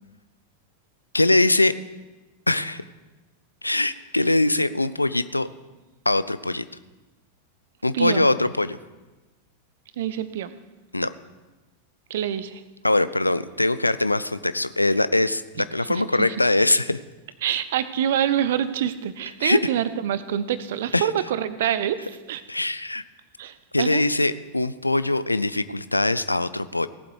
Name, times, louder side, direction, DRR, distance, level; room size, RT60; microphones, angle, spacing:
voice 1, 1.1-1.7 2.5-2.8 3.6-5.5 6.1-6.6 7.8-8.8 10.9-11.1 12.8-17.0 19.4-19.6 20.9-21.1 22.5-23.0 23.7-26.9, left 2 dB, 85° left, 15 dB, 0.4 m, -22 dB
voice 2, 7.9-8.3 10.0-10.5 12.1-12.6 15.6-16.3 17.4-22.4 23.4-24.0, right 10 dB, 55° right, 14 dB, 0.6 m, -26 dB
17.5 x 7.7 x 4.8 m, 1.1 s
figure-of-eight pair, 90°, 0 cm